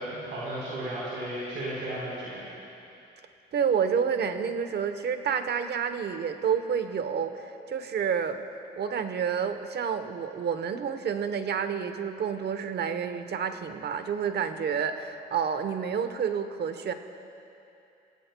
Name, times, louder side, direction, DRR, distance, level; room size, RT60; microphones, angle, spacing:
voice 1, 0.0-2.4, right 1 dB, 85° right, -7 dB, 3.9 m, -34 dB
voice 2, 3.5-8.4 8.8-16.9, right 7 dB, 55° right, 9 dB, 0.9 m, -29 dB
27.0 x 16.0 x 2.3 m, 2.8 s
cardioid pair, 90°, 20 cm